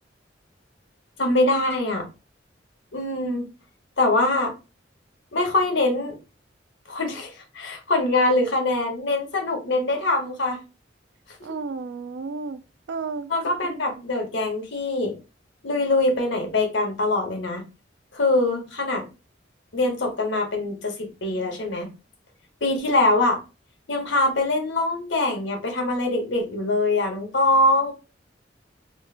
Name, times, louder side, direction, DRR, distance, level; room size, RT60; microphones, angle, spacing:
voice 1, 1.2-2.1 2.9-3.5 4.0-4.5 5.3-6.2 6.9-10.6 13.3-15.1 15.6-17.6 18.1-19.0 19.7-21.9 22.6-23.4 23.9-27.9, left 2 dB, 75° left, 1.0 m, -23 dB
voice 2, 11.4-13.3 14.0-14.1, right 4 dB, 65° right, 0.4 m, -33 dB
3.1 x 2.4 x 3.2 m
head